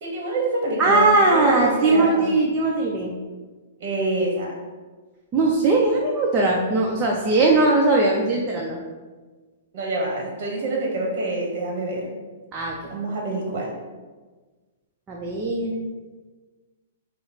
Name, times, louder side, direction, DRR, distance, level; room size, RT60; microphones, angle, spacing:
voice 1, 0.0-2.3 3.8-4.5 9.7-12.1 12.9-13.7, right 2 dB, 50° right, -1 dB, 1.0 m, -26 dB
voice 2, 0.8-3.1 5.3-8.8 12.5-12.9 15.1-15.9, right 2 dB, 20° right, -3 dB, 0.6 m, -20 dB
5.6 x 2.0 x 4.0 m, 1.3 s
hypercardioid pair, 140°, 0 cm